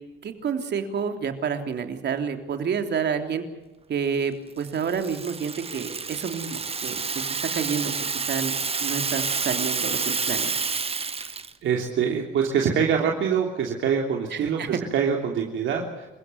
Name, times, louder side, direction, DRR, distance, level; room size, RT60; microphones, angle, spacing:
voice 1, 0.2-3.4 3.9-7.2 7.5-10.5 14.3-14.8, right 6 dB, 60° right, 6 dB, 3.4 m, -29 dB
Rattle (instrument), 4.6-11.5, right 5 dB, 30° right, 1.3 m, -29 dB
voice 2, 11.6-16.1, right 7 dB, 75° right, 1 dB, 3.2 m, -24 dB
27.5 x 16.5 x 8.0 m, 1.1 s
cardioid pair, 90°, 20 cm